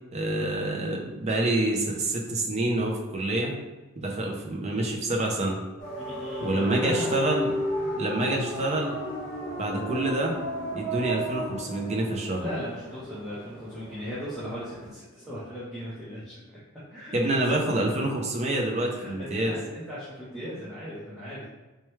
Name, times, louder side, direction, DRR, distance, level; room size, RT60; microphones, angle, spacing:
voice 1, 0.1-3.5 4.0-5.6 6.4-7.5 8.0-9.0 9.6-10.4 10.7-12.5 17.1-19.6, right 1 dB, 30° right, 0 dB, 0.5 m, -27 dB
sound 1, 5.8-14.9, equal, 35° left, 1.1 m, -34 dB
voice 2, 6.0-7.3 7.8-8.2 12.3-16.6 16.9-18.1 18.8-21.5, equal, ahead, -10 dB, 0.7 m, -38 dB
4.5 x 2.2 x 3.1 m, 1.1 s
head